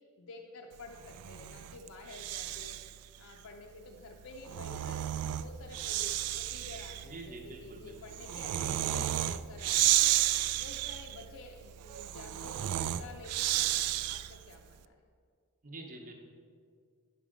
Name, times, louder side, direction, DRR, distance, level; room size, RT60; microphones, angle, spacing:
voice 1, 0.2-2.8 3.2-5.0 5.4-12.6 13.0-15.0, left 2 dB, 65° left, 1 dB, 0.6 m, -50 dB
Breathing, 1.0-3.0 4.2-14.5, right 13 dB, 75° right, 0.3 m, -32 dB
voice 2, 7.0-8.4 15.6-16.1, right 2 dB, 35° right, 1 dB, 0.9 m, -47 dB
9.9 x 5.1 x 4.9 m, 2.1 s
head